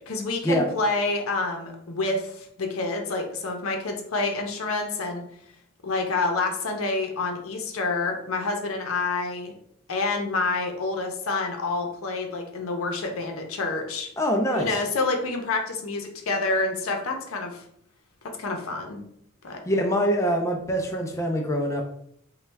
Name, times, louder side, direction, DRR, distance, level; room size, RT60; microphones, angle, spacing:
voice 1, 0.0-5.2 5.8-9.5 9.9-14.1 14.5-17.6 18.4-19.0 19.4-19.6, left 3 dB, 90° left, 3 dB, 0.6 m, -28 dB
voice 2, 14.2-14.7 19.7-21.8, equal, 15° left, 2 dB, 0.3 m, -24 dB
3.1 x 2.2 x 3.3 m, 0.70 s
head